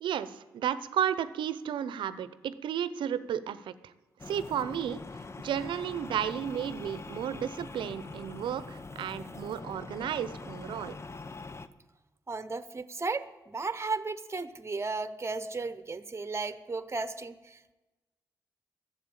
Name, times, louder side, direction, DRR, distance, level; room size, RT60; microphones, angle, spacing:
voice 1, 0.0-3.9 4.3-5.0 5.4-11.0, right 9 dB, 80° right, 15 dB, 0.7 m, -33 dB
sound 1, 4.2-11.7, left 3 dB, 35° left, 0.8 m, -43 dB
voice 2, 12.3-17.7, right 3 dB, 35° right, 13 dB, 1.0 m, -35 dB
12.0 x 7.8 x 8.9 m, 1.1 s
supercardioid pair, 45°, 8 cm